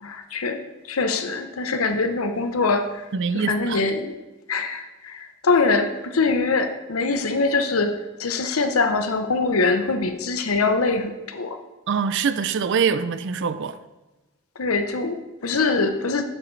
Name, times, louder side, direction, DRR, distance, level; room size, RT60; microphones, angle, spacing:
voice 1, 0.0-3.0 3.3-4.1 4.5-11.6 14.6-16.2, left 3 dB, 80° left, 0.8 m, -23 dB
voice 2, 3.1-3.8 11.9-13.8, right 6 dB, 55° right, 0.4 m, -24 dB
8.6 x 7.5 x 3.3 m
head